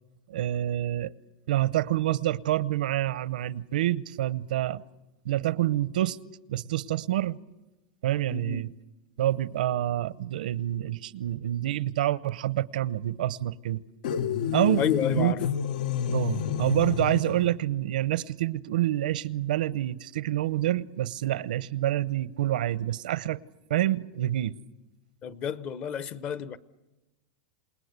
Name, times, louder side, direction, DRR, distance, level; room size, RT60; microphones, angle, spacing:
voice 1, 0.3-1.1 1.5-4.8 5.2-6.2 6.5-7.4 8.0-8.7 9.2-13.8 14.5-14.8 15.2-15.3 16.1-23.4 23.7-24.6, right 13 dB, 80° right, 0.8 m, -27 dB
voice 2, 8.3-8.6 14.8-15.4 25.2-26.6, left 9 dB, 25° left, 0.8 m, -30 dB
sound 1, 14.0-17.5, left 8 dB, 75° left, 1.1 m, -29 dB
28.0 x 20.0 x 8.2 m
supercardioid pair, 170°, 5 cm